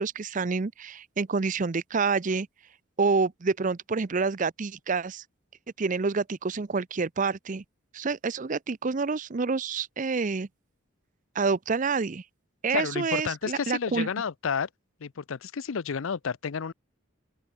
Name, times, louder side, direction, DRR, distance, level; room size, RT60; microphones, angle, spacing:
voice 1, 0.0-2.5 3.0-5.2 5.8-7.6 7.9-10.5 11.4-12.2 12.6-14.1, right 4 dB, 40° right, 0.5 m, -28 dB
voice 2, 12.7-14.7 15.0-16.7, left 6 dB, 70° left, 0.5 m, -31 dB
open air
head